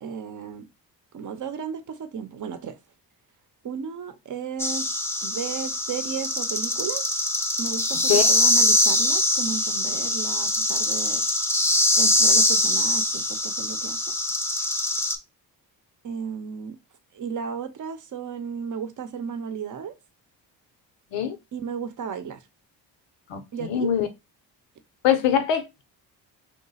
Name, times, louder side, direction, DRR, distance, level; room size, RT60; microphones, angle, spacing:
voice 1, 0.0-0.7 1.1-2.8 3.6-4.9 5.2-7.0 7.6-11.2 11.9-14.0 14.6-14.7 16.0-16.8 17.1-19.9 21.5-22.4 23.5-23.9, right 7 dB, 45° right, 0.7 m, -34 dB
sound 1, 4.6-15.2, left 1 dB, 5° left, 0.5 m, -23 dB
voice 2, 23.3-24.1 25.0-25.8, left 9 dB, 85° left, 0.8 m, -23 dB
3.0 x 2.2 x 4.0 m
supercardioid pair, 65°, 44 cm